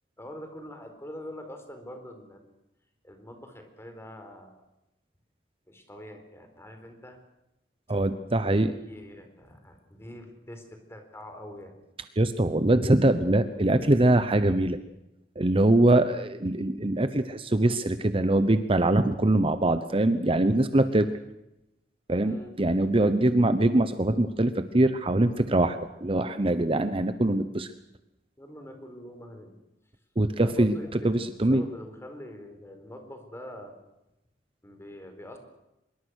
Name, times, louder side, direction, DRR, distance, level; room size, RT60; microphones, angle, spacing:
voice 1, 0.2-2.5 3.0-4.6 5.7-7.2 8.4-11.7 15.6-16.1 20.9-21.2 22.2-22.5 28.4-29.5 30.3-33.7 34.6-35.4, left 1 dB, 15° left, 6 dB, 4.3 m, -44 dB
voice 2, 7.9-8.7 12.2-14.8 15.4-21.1 22.1-27.7 30.2-30.7 31.0-31.6, right 1 dB, 30° right, 11 dB, 1.0 m, -23 dB
25.0 x 23.0 x 6.4 m, 0.91 s
head